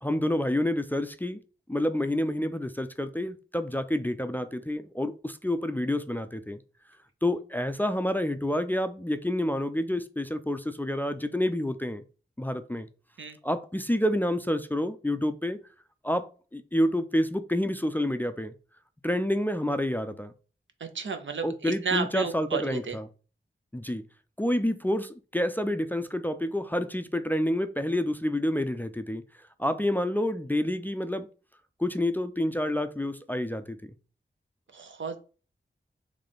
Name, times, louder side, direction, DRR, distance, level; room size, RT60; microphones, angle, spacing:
voice 1, 0.0-1.4 1.7-6.6 7.2-12.0 12.4-12.9 13.4-15.6 16.0-18.5 19.0-20.3 21.4-23.1 23.7-24.0 24.4-29.2 29.6-31.3 31.8-33.8, left 1 dB, 10° left, 0.4 m, -28 dB
voice 2, 20.8-23.0 34.7-35.2, right 5 dB, 70° right, 0.7 m, -32 dB
3.4 x 3.2 x 4.0 m
wide cardioid pair, 75°, 20 cm